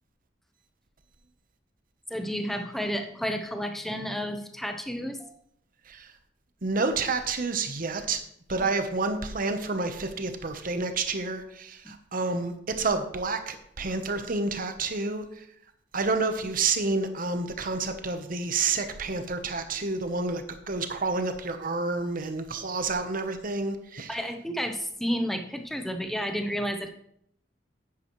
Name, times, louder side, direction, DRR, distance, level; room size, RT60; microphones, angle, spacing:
voice 1, 2.1-5.4 11.8-11.9 24.1-26.9, equal, ahead, 6 dB, 0.8 m, -31 dB
voice 2, 6.6-8.2 8.5-15.5 15.9-24.2, right 3 dB, 50° right, 8 dB, 1.0 m, -29 dB
10.5 x 8.4 x 3.1 m, 0.70 s
head